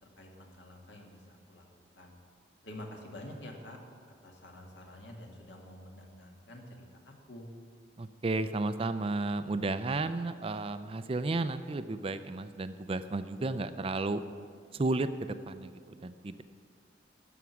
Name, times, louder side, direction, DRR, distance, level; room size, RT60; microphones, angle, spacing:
voice 1, 0.0-1.6 1.9-2.2 2.6-3.8 4.2-7.5, left 1 dB, 65° left, 1 dB, 2.0 m, -48 dB
voice 2, 8.0-14.2 14.7-16.4, right 2 dB, 30° right, 11 dB, 0.4 m, -33 dB
13.0 x 6.1 x 9.4 m, 2.1 s
head